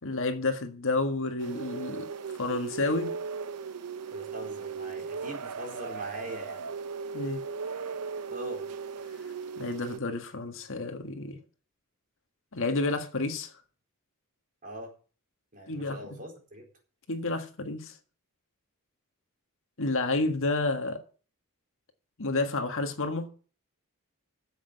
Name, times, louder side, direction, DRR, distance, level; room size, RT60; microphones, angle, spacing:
voice 1, 0.0-2.1 2.4-3.1 7.1-7.4 9.6-11.4 12.5-13.5 15.7-16.0 17.1-17.9 19.8-21.0 22.2-23.3, left 2 dB, 60° left, 1.7 m, -30 dB
sound 1, 1.4-10.0, right 5 dB, 85° right, 0.7 m, -37 dB
voice 2, 4.1-6.7 8.3-8.6 14.6-14.9 15.5-16.6, right 1 dB, 40° right, 4.3 m, -41 dB
10.0 x 7.7 x 7.8 m
head